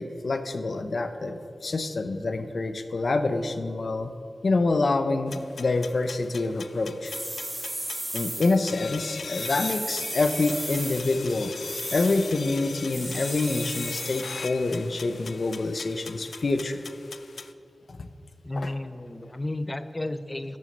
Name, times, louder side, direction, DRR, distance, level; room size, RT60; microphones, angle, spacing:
voice 1, 0.0-4.1 4.4-7.2 8.1-11.5 11.9-16.8 17.9-18.1 18.6-18.7, left 3 dB, 65° left, 9 dB, 0.7 m, -27 dB
sound 1, 5.3-17.5, left 5 dB, 90° left, 0.3 m, -40 dB
sound 2, 7.0-8.6 9.3-11.2 11.6-12.3 12.9-14.3, right 1 dB, 20° right, 1.2 m, -35 dB
voice 2, 18.4-20.6, left 1 dB, 30° left, 12 dB, 0.5 m, -32 dB
12.5 x 6.3 x 5.3 m, 2.6 s
wide cardioid pair, 65°, 0 cm